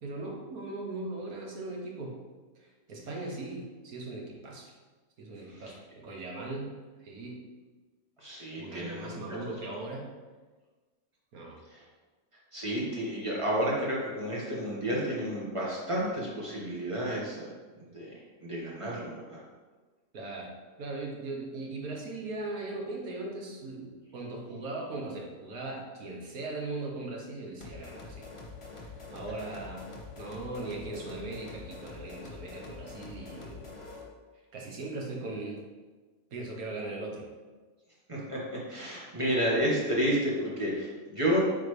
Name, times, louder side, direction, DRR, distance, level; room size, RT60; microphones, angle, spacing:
voice 1, 0.0-2.2 2.6-4.7 5.2-6.7 7.0-7.4 8.6-10.1 11.3-11.6 20.1-28.3 28.8-29.8 30.2-33.6 34.5-35.6 36.3-37.3, right 2 dB, 85° right, 0 dB, 1.6 m, -39 dB
voice 2, 8.2-9.4 11.7-11.8 12.5-17.5 17.8-19.4 38.1-41.4, equal, 20° right, -6 dB, 1.7 m, -31 dB
sound 1, 27.6-34.1, left 3 dB, 25° left, 0.9 m, -45 dB
8.4 x 4.3 x 3.3 m, 1.3 s
omnidirectional pair, 1.5 m